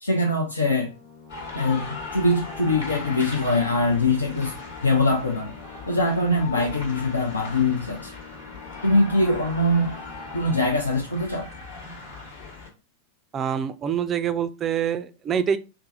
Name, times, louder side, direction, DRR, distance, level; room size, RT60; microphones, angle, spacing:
voice 1, 0.0-0.9 1.5-5.5 5.9-8.1 8.8-10.0 10.3-11.5, left 2 dB, 80° left, 0.5 m, -23 dB
sound 1, 0.8-12.1, left 5 dB, 25° left, 0.8 m, -47 dB
sound 2, 1.3-12.7, left 3 dB, 55° left, 1.3 m, -39 dB
voice 2, 13.3-15.6, right 8 dB, 25° right, 0.3 m, -25 dB
3.3 x 2.0 x 4.0 m
figure-of-eight pair, 90°, 0 cm